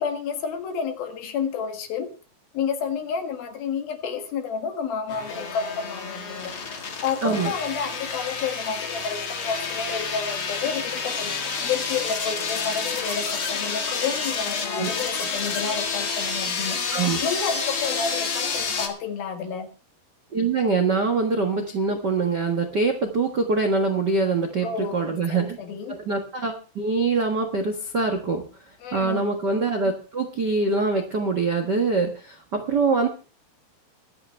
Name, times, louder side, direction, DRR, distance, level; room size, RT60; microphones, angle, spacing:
voice 1, 0.0-2.1 2.5-6.7 7.0-19.7 24.6-26.0 28.8-29.3, left 6 dB, 70° left, 5 dB, 3.5 m, -30 dB
sound 1, 5.1-18.9, left 5 dB, 40° left, 2.1 m, -29 dB
voice 2, 7.2-7.5 14.7-14.9 16.9-17.2 20.3-25.6 25.9-28.4 28.9-33.1, right 4 dB, 65° right, 3 dB, 1.0 m, -24 dB
22.5 x 8.8 x 3.4 m, 0.36 s
omnidirectional pair, 4.4 m